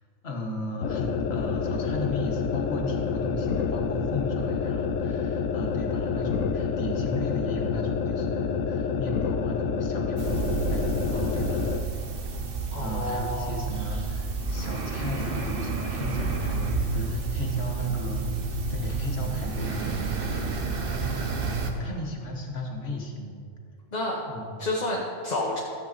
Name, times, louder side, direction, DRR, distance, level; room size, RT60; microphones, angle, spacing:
voice 1, 0.2-11.7 12.7-21.0 21.8-23.4 24.3-24.5, left 1 dB, 55° left, 0 dB, 1.7 m, -35 dB
sound 1, 0.8-11.9, left 6 dB, 85° left, 1.0 m, -28 dB
sound 2, 10.2-21.7, right 4 dB, 50° right, 1.1 m, -30 dB
voice 2, 12.7-13.6 21.7-21.9 23.9-24.2 24.6-25.6, left 2 dB, 35° left, -4 dB, 1.4 m, -30 dB
14.0 x 8.2 x 4.1 m, 2.2 s
omnidirectional pair, 1.3 m